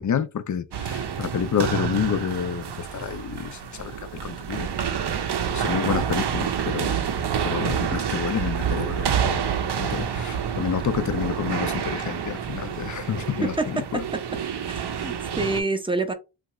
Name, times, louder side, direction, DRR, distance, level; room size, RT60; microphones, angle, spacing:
voice 1, 0.0-2.6 2.9-3.9 4.2-4.7 5.5-7.1 7.4-14.0, left 8 dB, 40° left, 0.4 m, -29 dB
sound 1, 0.7-15.6, right 8 dB, 60° right, 0.6 m, -28 dB
voice 2, 14.7-16.1, right 3 dB, 10° right, 0.5 m, -27 dB
2.8 x 2.4 x 3.0 m
wide cardioid pair, 60°, 46 cm